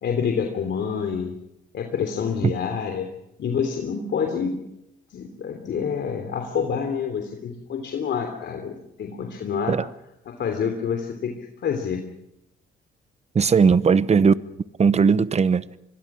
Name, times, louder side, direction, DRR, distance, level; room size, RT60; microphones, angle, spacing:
voice 1, 0.0-1.3 1.7-3.1 3.4-4.6 5.1-9.7 10.3-11.3 11.6-12.0, left 6 dB, 65° left, 3.1 m, -27 dB
voice 2, 13.3-14.3 14.8-15.6, right 5 dB, 35° right, 0.9 m, -18 dB
25.5 x 22.5 x 6.2 m
cardioid pair, 90°, 20 cm